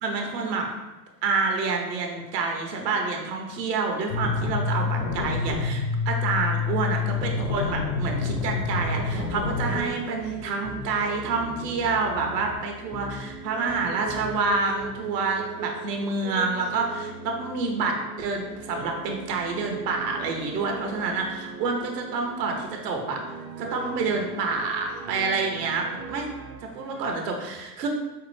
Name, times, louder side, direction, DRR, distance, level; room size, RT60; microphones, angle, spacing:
voice 1, 0.0-0.7 1.2-23.2 23.6-26.3 26.6-27.9, right 4 dB, 80° right, 2 dB, 0.9 m, -28 dB
sound 1, 4.1-9.8, left 4 dB, 75° left, 0.7 m, -27 dB
sound 2, 7.6-27.1, right 5 dB, 40° right, 0.5 m, -40 dB
sound 3, 9.6-11.1 11.4-12.6 12.9-13.4 13.7-14.6 14.8-14.9, left 1 dB, 20° left, 0.3 m, -41 dB
5.6 x 2.0 x 3.1 m, 1.1 s
hypercardioid pair, 100°, 48 cm